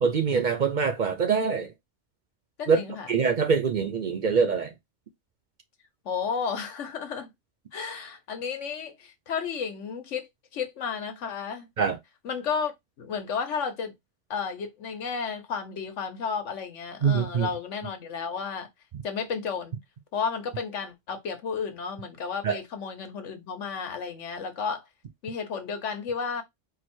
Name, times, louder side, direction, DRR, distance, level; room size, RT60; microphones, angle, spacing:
voice 1, 0.0-1.7 2.7-2.8 3.1-4.7 11.8-12.0 17.0-17.5 22.4-22.6, right 6 dB, 55° right, 0.6 m, -24 dB
voice 2, 2.6-3.2 6.0-7.3 7.7-11.7 12.2-12.7 13.0-13.9 14.3-18.7 19.0-19.8 20.1-24.9 25.2-26.4, left 6 dB, 90° left, 1.3 m, -32 dB
4.7 x 2.0 x 4.3 m
omnidirectional pair, 1.2 m